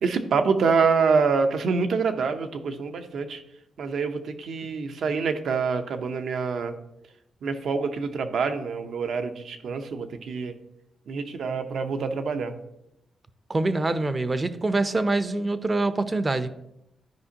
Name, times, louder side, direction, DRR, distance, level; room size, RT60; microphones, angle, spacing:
voice 1, 0.0-3.4 3.8-6.7 7.4-10.5 11.1-12.6, right 5 dB, 70° right, 7 dB, 0.7 m, -26 dB
voice 2, 13.5-16.5, right 2 dB, 30° right, 12 dB, 0.6 m, -25 dB
12.0 x 5.1 x 2.8 m, 0.84 s
cardioid pair, 85°, 0 cm